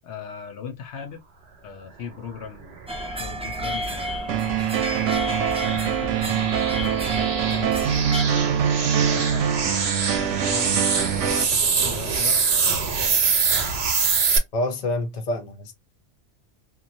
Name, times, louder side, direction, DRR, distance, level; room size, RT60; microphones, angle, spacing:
voice 1, 0.0-1.2 1.6-2.8 3.2-5.0 5.6-7.7 8.7-13.4, left 7 dB, 70° left, 0.9 m, -39 dB
sound 1, 2.8-14.4, right 5 dB, 65° right, 1.0 m, -25 dB
sound 2, 2.9-8.2, equal, 10° right, 0.3 m, -31 dB
sound 3, 4.3-11.4, right 9 dB, 90° right, 0.9 m, -24 dB
voice 2, 14.5-15.7, left 1 dB, 40° left, 0.8 m, -27 dB
3.0 x 2.4 x 2.5 m
omnidirectional pair, 1.2 m